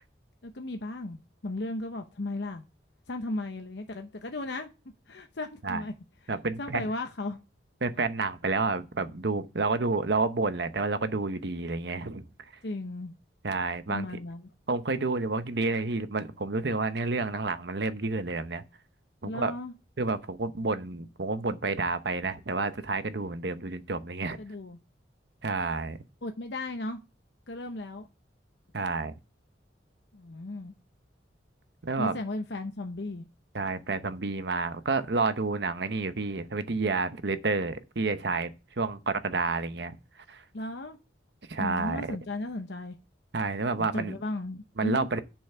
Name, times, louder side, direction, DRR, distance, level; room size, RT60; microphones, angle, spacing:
voice 1, 0.4-2.6 3.1-4.7 5.1-5.9 6.6-7.4 12.6-13.1 13.9-14.5 19.2-19.7 24.4-24.8 26.2-27.0 27.5-28.1 30.1-30.7 32.0-33.2 40.5-41.0 41.6-43.0 43.8-45.1, left 2 dB, 70° left, 0.8 m, -35 dB
voice 2, 6.3-6.9 7.8-12.2 13.4-14.1 14.7-18.6 19.2-19.5 20.0-24.4 25.4-26.0 28.7-29.1 31.8-32.2 33.5-40.0 40.3-40.4 41.5-42.2 43.3-44.2 44.8-45.2, right 3 dB, 65° right, 0.9 m, -30 dB
7.0 x 5.6 x 7.1 m
head